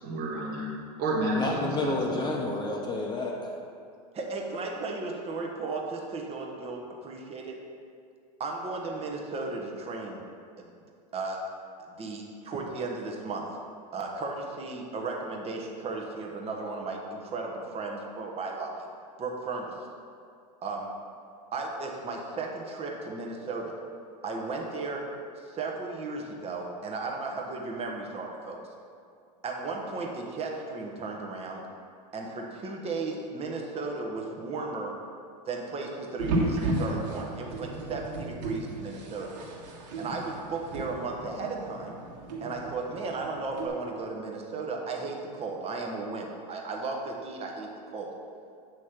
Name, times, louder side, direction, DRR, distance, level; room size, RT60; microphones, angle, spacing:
voice 1, 0.0-0.7 1.0-2.3, right 1 dB, 50° right, -3 dB, 1.7 m, -30 dB
voice 2, 1.3-3.5, left 2 dB, 20° left, 0 dB, 0.8 m, -30 dB
voice 3, 4.1-7.5 8.4-10.2 10.6-10.7 11.1-11.4 12.0-13.4 13.9-18.7 19.2-19.7 20.6-20.9 21.5-23.7 24.2-25.0 25.5-28.6 29.4-31.6 32.1-34.9 35.5-39.3 40.0-42.0 42.4-48.1, right 3 dB, 30° right, 0 dB, 1.1 m, -35 dB
sound 1, 36.2-43.7, right 2 dB, 70° right, 1.6 m, -34 dB
8.2 x 3.2 x 5.9 m, 2.3 s
hypercardioid pair, 110°, 21 cm